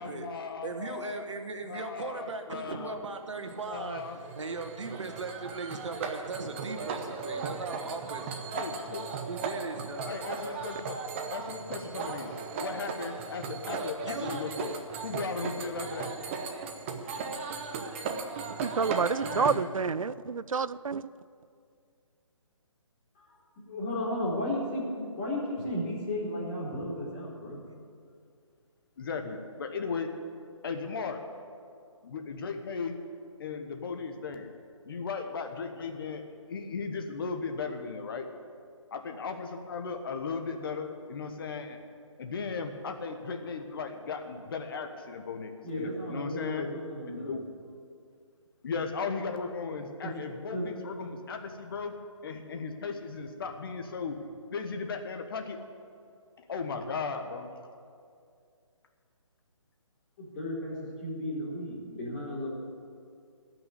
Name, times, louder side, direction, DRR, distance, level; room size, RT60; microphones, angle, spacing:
voice 1, 0.0-1.2 1.6-3.0 3.7-4.2 8.5-9.1 10.0-11.0 11.3-14.7 15.0-16.3 19.2-19.7 29.0-30.1 30.6-31.2 32.0-33.0 33.4-34.5 34.9-36.2 36.5-38.3 38.9-41.8 42.2-46.7 47.1-47.5 48.6-51.9 52.2-54.2 54.5-55.6 56.5-57.5, left 5 dB, 45° left, 6 dB, 1.3 m, -36 dB
voice 2, 0.6-4.0 4.3-8.6 9.3-10.2 13.6-14.3, right 4 dB, 60° right, 5 dB, 1.6 m, -38 dB
sound 1, 3.4-19.6, right 5 dB, 20° right, 0.8 m, -37 dB
voice 3, 18.6-21.0, right 5 dB, 80° right, 17 dB, 0.5 m, -29 dB
voice 4, 23.1-27.6 45.6-47.3 50.0-50.1 50.5-50.7 60.2-62.5, left 1 dB, 25° left, -6 dB, 4.5 m, -34 dB
16.0 x 6.2 x 9.5 m, 2.3 s
figure-of-eight pair, 150°, 17 cm